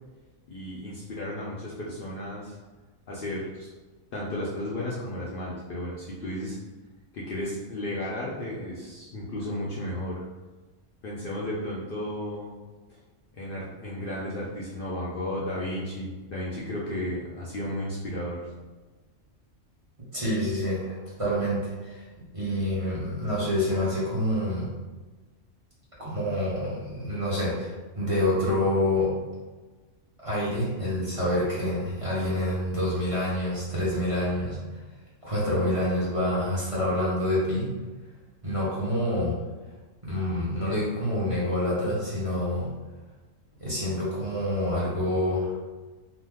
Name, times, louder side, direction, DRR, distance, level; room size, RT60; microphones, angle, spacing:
voice 1, 0.5-2.6 3.1-3.7 4.1-6.6 7.1-10.2 11.0-12.5 13.3-18.5, left 1 dB, 60° left, -6 dB, 0.6 m, -33 dB
voice 2, 20.1-22.1 22.3-24.7 26.0-29.1 30.2-34.6 35.2-37.7 38.4-39.3 40.0-42.7 43.6-45.5, left 1 dB, 30° right, -9 dB, 0.8 m, -27 dB
2.9 x 2.0 x 3.4 m, 1.3 s
omnidirectional pair, 1.3 m